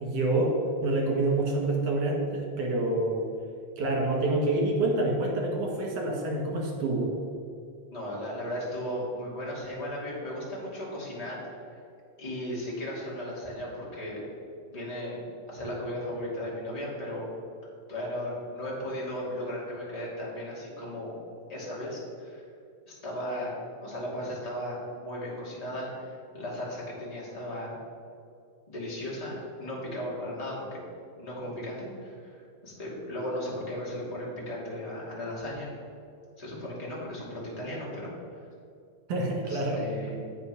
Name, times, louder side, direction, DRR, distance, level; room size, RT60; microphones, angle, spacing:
voice 1, 0.0-3.3 3.8-7.1 39.1-39.8, right 2 dB, 60° right, -2 dB, 2.7 m, -27 dB
voice 2, 7.9-11.8 12.2-14.2 14.7-17.3 17.9-21.2 21.5-22.4 22.9-23.5 23.8-27.7 28.7-30.8 31.2-35.7 36.4-38.4 39.4-40.1, left 1 dB, 15° left, -6 dB, 1.7 m, -36 dB
8.2 x 5.0 x 6.0 m, 2.4 s
omnidirectional pair, 3.4 m